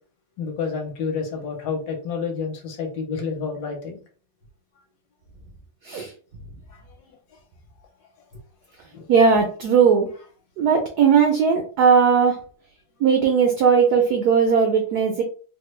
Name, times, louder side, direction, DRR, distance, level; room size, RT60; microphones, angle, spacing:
voice 1, 0.4-4.0 6.7-7.1 8.9-9.1, left 5 dB, 70° left, 2 dB, 1.4 m, -29 dB
voice 2, 9.1-10.1 10.6-12.4 13.0-15.2, right 6 dB, 85° right, 3 dB, 0.8 m, -18 dB
3.3 x 2.2 x 3.0 m, 0.40 s
omnidirectional pair, 2.3 m